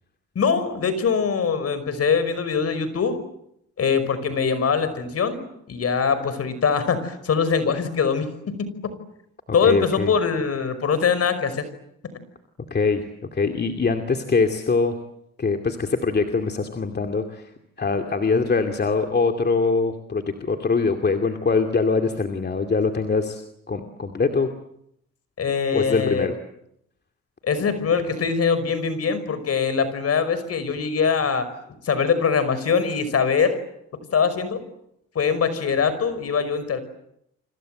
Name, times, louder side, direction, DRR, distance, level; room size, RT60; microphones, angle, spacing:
voice 1, 0.4-3.2 3.8-8.9 9.5-11.6 25.4-26.3 27.4-31.5 31.8-33.6 34.1-34.6 35.2-36.8, left 6 dB, 55° left, 13 dB, 5.3 m, -23 dB
voice 2, 9.6-10.1 12.7-13.0 13.3-15.0 15.4-17.5 17.8-23.4 23.7-24.5 25.7-26.3, left 4 dB, 35° left, 5 dB, 2.5 m, -23 dB
29.5 x 26.0 x 7.8 m, 0.77 s
cardioid pair, 90°, 30 cm